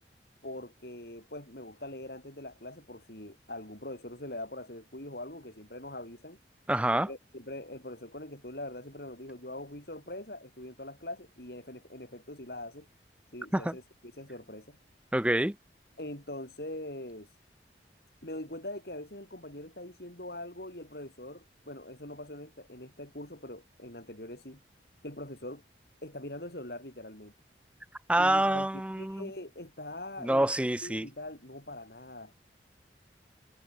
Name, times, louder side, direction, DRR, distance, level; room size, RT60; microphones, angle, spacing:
voice 1, 0.4-6.4 6.9-12.9 13.3-14.8 16.0-17.3 18.2-24.6 25.0-25.6 26.0-27.3 28.2-28.7 29.0-30.5 30.8-32.3, left 1 dB, 60° left, 7.2 m, -43 dB
voice 2, 6.7-7.1 13.5-13.7 15.1-15.5 28.1-29.3 30.2-31.1, right 1 dB, 5° right, 0.6 m, -26 dB
head